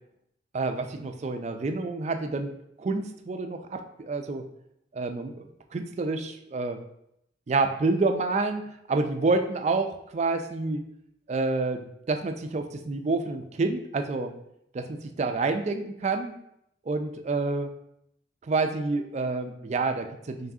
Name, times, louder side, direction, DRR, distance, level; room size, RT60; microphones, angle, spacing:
voice 1, 0.5-2.5 2.8-4.4 4.9-6.8 7.5-8.6 8.9-10.8 11.3-14.4 14.7-16.3 16.9-17.7 18.5-20.5, right 3 dB, 35° right, 6 dB, 0.3 m, -28 dB
4.7 x 3.1 x 2.7 m, 0.77 s
head